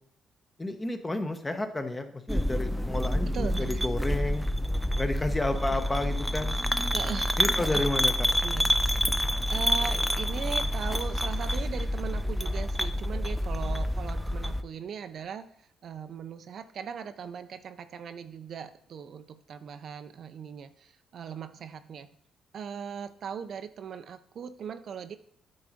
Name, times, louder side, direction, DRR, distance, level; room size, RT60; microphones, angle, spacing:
voice 1, 0.6-4.4 5.0-6.6 7.4-8.1, left 2 dB, 20° left, 7 dB, 1.0 m, -31 dB
sound 1, 2.3-14.6, equal, ahead, 0.5 m, -28 dB
voice 2, 3.3-3.9 5.5-5.8 6.7-7.9 8.4-8.8 9.5-22.1 22.5-25.2, right 7 dB, 60° right, 11 dB, 0.5 m, -39 dB
9.2 x 4.0 x 5.0 m, 0.67 s
cardioid pair, 90°, 0 cm